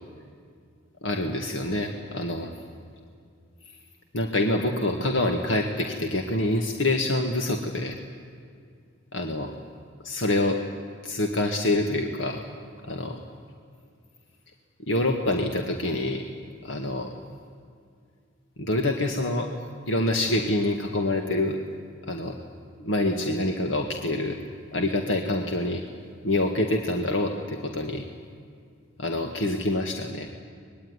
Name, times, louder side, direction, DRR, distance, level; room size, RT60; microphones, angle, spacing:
voice 1, 1.0-2.5 4.1-8.0 9.1-9.5 10.0-10.6 11.0-12.4 12.8-13.2 14.9-16.2 16.6-17.1 18.6-19.5 19.9-21.6 22.1-22.4 22.8-24.4 24.7-25.8 26.2-28.0 29.0-30.3, left 1 dB, 75° left, 3 dB, 1.8 m, -26 dB
25.0 x 21.0 x 9.8 m, 2.3 s
head